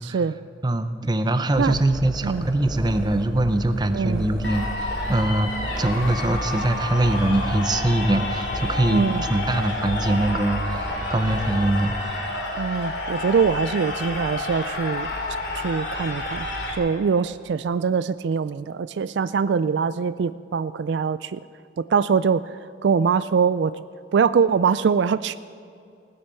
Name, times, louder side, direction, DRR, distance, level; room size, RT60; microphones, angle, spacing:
voice 1, 0.0-0.3 1.6-1.8 2.2-2.5 3.9-4.2 8.9-9.2 12.6-15.1 15.5-16.5 16.8-21.4 21.8-23.7 24.1-25.4, right 6 dB, 65° right, 14 dB, 0.3 m, -23 dB
voice 2, 0.6-5.5 5.8-11.9, right 1 dB, 20° right, 10 dB, 0.6 m, -23 dB
sound 1, 1.5-12.0, right 1 dB, 5° left, 3.0 m, -34 dB
sound 2, 4.4-16.7, left 2 dB, 65° left, 2.8 m, -30 dB
17.0 x 9.8 x 6.9 m, 2.4 s
head